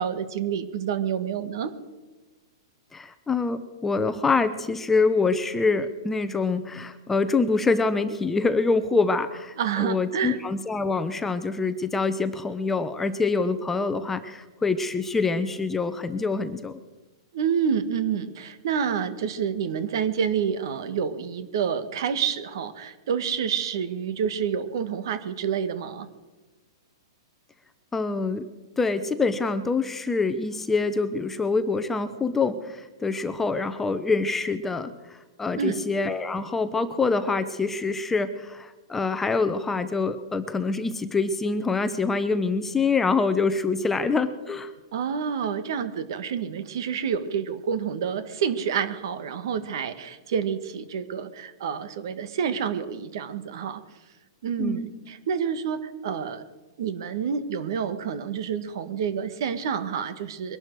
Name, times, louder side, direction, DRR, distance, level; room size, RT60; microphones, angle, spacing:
voice 1, 0.0-1.7 9.6-10.4 17.3-26.1 35.5-35.8 44.9-53.8 54.4-56.4 56.8-60.6, right 7 dB, 65° right, 11 dB, 1.7 m, -28 dB
voice 2, 2.9-16.8 27.9-28.5 28.8-34.9 35.4-44.7 54.6-54.9, left 4 dB, 10° left, 10 dB, 0.9 m, -25 dB
22.5 x 11.5 x 4.7 m, 1.2 s
hypercardioid pair, 145°, 2 cm